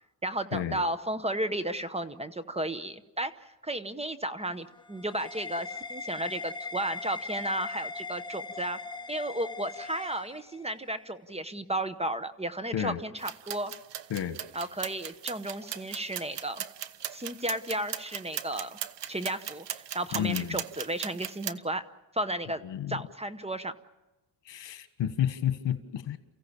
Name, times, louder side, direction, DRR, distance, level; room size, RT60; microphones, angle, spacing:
voice 1, 0.2-8.8 9.1-13.7 14.5-16.6 17.1-18.8 19.1-21.9 22.1-22.6 22.9-23.7, right 1 dB, 15° right, 11 dB, 0.9 m, -33 dB
sound 1, 4.4-10.9, left 3 dB, 10° left, 1.3 m, -40 dB
sound 2, 13.2-21.5, right 10 dB, 75° right, 1.0 m, -39 dB
voice 2, 20.1-20.6 22.6-23.0 24.4-26.2, left 10 dB, 80° left, 10 dB, 1.6 m, -31 dB
29.5 x 15.5 x 7.2 m, 1.0 s
cardioid pair, 125°, 43 cm